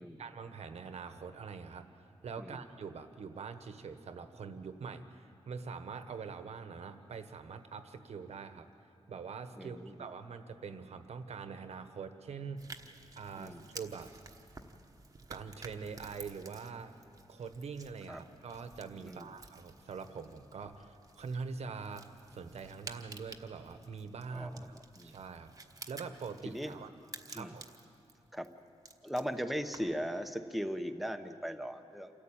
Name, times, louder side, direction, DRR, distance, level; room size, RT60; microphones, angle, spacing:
voice 1, 0.2-1.9 2.2-8.7 9.1-12.7 13.2-14.1 15.3-17.0 17.3-24.8 25.0-25.6 25.9-26.9 27.3-27.6, right 5 dB, 70° right, 9 dB, 1.3 m, -44 dB
voice 2, 9.6-10.0 13.4-13.6 18.1-18.2 19.0-19.3 24.3-25.1 26.4-26.7 27.3-27.5 28.3-28.5 29.0-32.1, equal, ahead, 6 dB, 1.0 m, -38 dB
sound 1, 12.6-30.1, right 3 dB, 30° right, 1.2 m, -53 dB
27.5 x 14.0 x 8.9 m, 2.5 s
wide cardioid pair, 135°, 11 cm